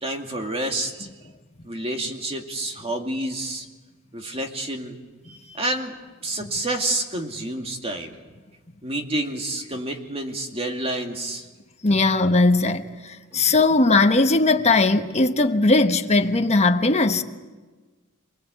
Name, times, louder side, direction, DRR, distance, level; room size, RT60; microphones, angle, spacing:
voice 1, 0.0-1.1 1.6-3.7 4.1-5.0 5.2-5.9 6.2-8.2 8.8-11.4, right 1 dB, 30° right, 2.3 m, -29 dB
voice 2, 11.8-17.2, left 3 dB, 30° left, 1.2 m, -19 dB
28.0 x 20.0 x 8.2 m
head